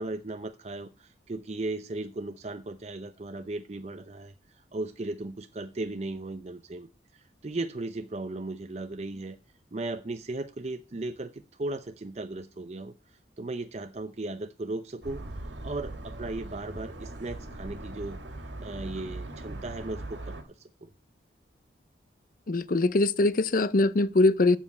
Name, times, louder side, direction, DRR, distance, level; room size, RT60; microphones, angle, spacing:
voice 1, 0.0-9.4 9.7-18.2 18.6-20.9, right 2 dB, 35° right, 0.5 m, -37 dB
sound 1, 15.0-20.4, right 1 dB, 85° right, 2.1 m, -40 dB
voice 2, 22.5-24.6, left 2 dB, 50° left, 0.6 m, -22 dB
7.2 x 7.2 x 8.1 m
head